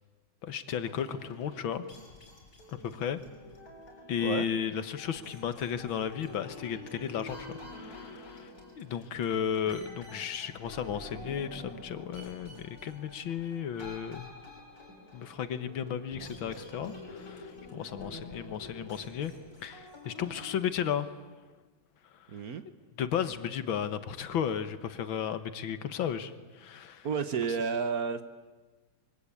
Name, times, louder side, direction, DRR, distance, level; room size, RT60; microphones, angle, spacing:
voice 1, 0.4-1.9 2.7-3.2 4.1-14.3 15.1-19.3 19.6-21.1 22.2-22.3 23.0-27.1, left 8 dB, 75° left, 12 dB, 2.0 m, -34 dB
sound 1, 0.8-20.6, left 2 dB, 45° left, 4.9 m, -48 dB
voice 2, 22.3-22.6 27.0-28.2, right 5 dB, 55° right, 11 dB, 1.4 m, -31 dB
25.0 x 23.0 x 8.6 m, 1.3 s
omnidirectional pair, 2.2 m